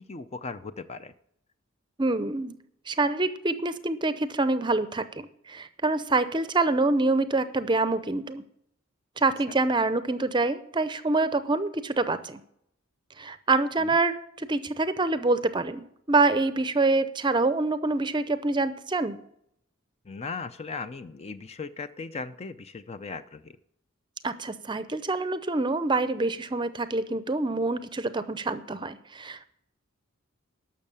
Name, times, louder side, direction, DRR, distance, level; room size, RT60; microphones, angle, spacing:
voice 1, 0.1-1.1 13.8-13.9 20.1-23.6, left 4 dB, 30° left, 11 dB, 0.5 m, -37 dB
voice 2, 2.0-2.6 2.9-8.4 9.2-12.4 13.2-19.2 24.2-29.5, right 3 dB, 25° right, 12 dB, 0.6 m, -26 dB
12.0 x 6.4 x 8.5 m, 0.74 s
head